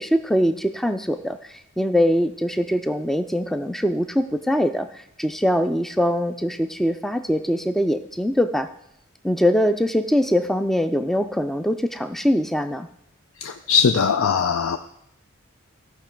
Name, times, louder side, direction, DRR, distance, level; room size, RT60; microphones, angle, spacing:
voice 1, 0.0-8.7 9.2-12.9, equal, ahead, 9 dB, 0.3 m, -22 dB
voice 2, 13.4-14.8, left 6 dB, 70° left, 8 dB, 0.4 m, -20 dB
15.0 x 5.8 x 4.5 m, 0.75 s
head